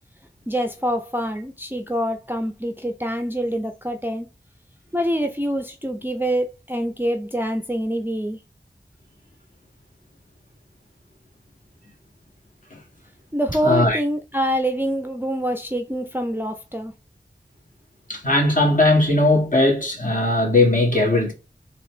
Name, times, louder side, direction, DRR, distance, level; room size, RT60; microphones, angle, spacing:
voice 1, 0.5-4.3 4.9-8.4 13.3-16.9, equal, 10° right, 0.5 m, -25 dB
voice 2, 13.6-14.0 18.1-21.3, left 2 dB, 45° left, 1.7 m, -18 dB
4.0 x 2.9 x 3.2 m
wide cardioid pair, 50°, 19 cm